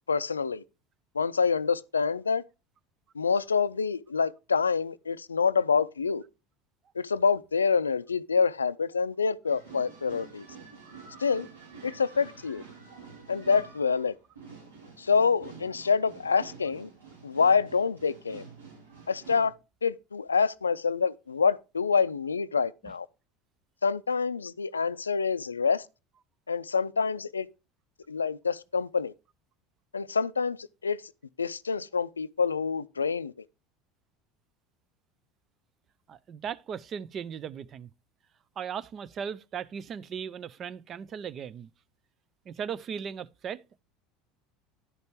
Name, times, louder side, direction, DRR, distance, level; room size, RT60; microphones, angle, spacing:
voice 1, 0.1-0.6 1.1-2.4 3.2-6.2 7.0-10.5 11.2-11.5 11.8-12.6 13.3-14.1 15.0-16.9 17.2-18.4 19.1-19.5 19.8-23.1 23.8-25.8 26.5-27.5 28.1-29.1 29.9-30.6 30.8-31.0 31.4-33.3, left 5 dB, 85° left, 0.4 m, -27 dB
sound 1, 9.4-19.5, right 5 dB, 85° right, 4.6 m, -48 dB
voice 2, 36.1-37.9 38.6-41.7 42.5-43.8, right 7 dB, 40° right, 0.6 m, -37 dB
11.0 x 5.2 x 4.6 m
figure-of-eight pair, 70°, 0 cm